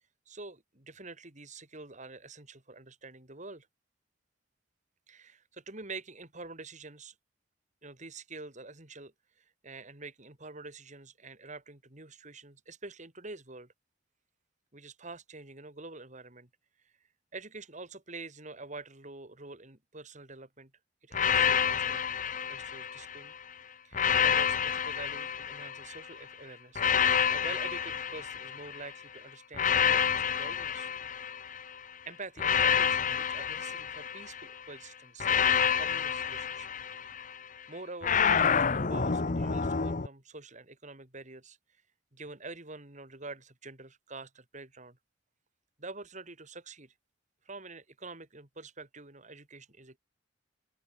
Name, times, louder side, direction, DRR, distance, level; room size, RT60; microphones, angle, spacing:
voice 1, 0.3-3.7 5.1-7.1 7.8-13.7 14.7-16.5 16.8-16.9 17.3-20.7 21.0-23.3 23.8-30.9 32.1-36.7 37.0-37.2 37.7-41.8 42.1-45.0 45.8-46.9 47.4-50.0, right 3 dB, 40° right, 4.1 m, -47 dB
sound 1, 21.1-23.3 23.9-26.1 26.8-28.9 29.5-31.7 32.4-34.5 35.2-37.4 38.0-40.1, left 7 dB, 40° left, 0.8 m, -28 dB
open air
head